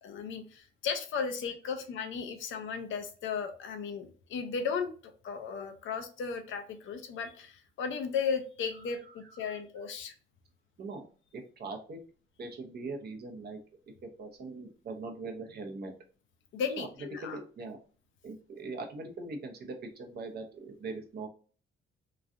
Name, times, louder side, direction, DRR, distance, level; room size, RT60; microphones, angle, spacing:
voice 1, 0.0-10.1 16.5-17.4, left 6 dB, 75° left, 7 dB, 0.6 m, -35 dB
voice 2, 8.7-9.6 10.8-11.1 11.3-12.0 12.4-13.6 14.2-15.9 16.8-16.9 17.2-17.8 18.2-21.3, right 3 dB, 55° right, 3 dB, 0.8 m, -41 dB
3.1 x 2.4 x 2.5 m, 0.39 s
cardioid pair, 90°, 20 cm